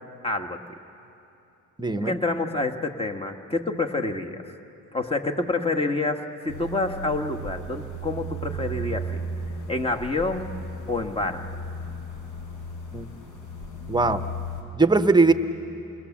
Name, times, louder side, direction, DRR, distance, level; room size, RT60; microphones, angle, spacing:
voice 1, 0.2-0.6 2.0-4.5 4.9-9.2 9.7-10.5 10.9-11.4, left 2 dB, 15° left, 4 dB, 1.5 m, -28 dB
voice 2, 1.8-2.1 12.9-13.1 13.9-14.2 14.7-15.3, right 3 dB, 15° right, 10 dB, 1.0 m, -20 dB
sound 1, 6.5-14.6, right 1 dB, 60° left, 5.0 m, -35 dB
27.0 x 21.0 x 7.3 m, 2.8 s
cardioid pair, 90°, 34 cm